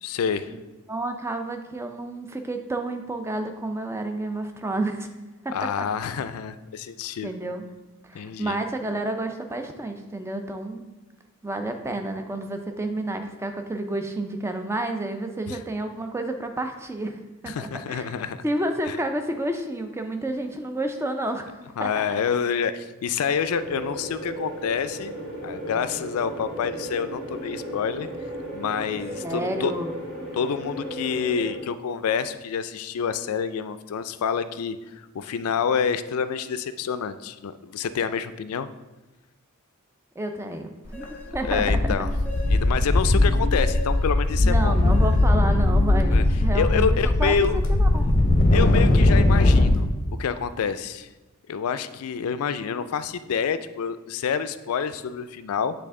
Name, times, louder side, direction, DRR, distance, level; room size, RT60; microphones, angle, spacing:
voice 1, 0.0-0.5 5.5-7.3 8.1-8.6 15.5-15.6 17.5-18.4 18.9-19.0 21.8-25.1 25.4-28.1 28.5-29.7 30.3-38.7 41.4-42.1 42.5-44.8 46.1-46.2 46.5-47.6 48.5-49.9 50.2-51.1 51.5-55.7, left 6 dB, 75° left, 12 dB, 0.4 m, -27 dB
voice 2, 0.9-5.1 5.4-5.5 7.2-7.6 8.0-10.8 11.4-18.2 18.4-21.5 21.8-22.1 29.2-29.9 40.2-41.1 41.3-41.8 44.4-48.1, right 1 dB, 10° right, 6 dB, 0.4 m, -30 dB
sound 1, 23.4-31.6, right 1 dB, 45° right, 1.6 m, -35 dB
sound 2, 40.9-41.0 41.3-49.8, left 1 dB, 35° left, 0.6 m, -20 dB
sound 3, 40.9-46.7, left 3 dB, 5° left, 1.1 m, -40 dB
7.8 x 3.4 x 3.6 m, 1.1 s
head